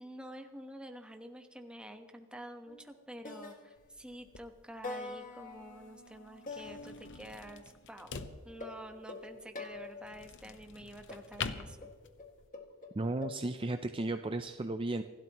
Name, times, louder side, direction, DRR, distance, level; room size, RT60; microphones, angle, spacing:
voice 1, 0.0-8.1 8.4-11.9, right 1 dB, 5° right, 5 dB, 1.2 m, -48 dB
sound 1, 2.7-3.0 3.2-4.3 4.8-7.7 8.1-10.3 11.1-13.4, left 3 dB, 40° left, 2.0 m, -46 dB
sound 2, 3.8-12.5, left 6 dB, 60° left, 0.9 m, -47 dB
voice 2, 12.9-15.0, right 2 dB, 25° right, 8 dB, 0.5 m, -34 dB
28.0 x 12.5 x 3.0 m, 1.5 s
head